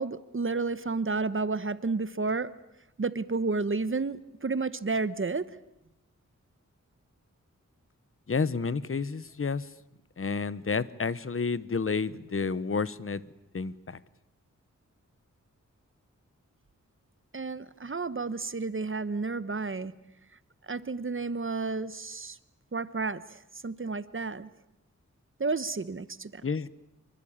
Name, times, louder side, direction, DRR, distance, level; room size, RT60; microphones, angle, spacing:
voice 1, 0.0-2.5 3.0-5.6 17.3-19.9 20.6-22.4 22.7-24.5 25.4-26.4, right 3 dB, 40° right, 1.0 m, -31 dB
voice 2, 8.3-9.7 10.2-13.2 13.5-14.0 26.4-26.7, left 5 dB, 45° left, 1.0 m, -30 dB
26.0 x 23.5 x 8.8 m
wide cardioid pair, 90°, 30 cm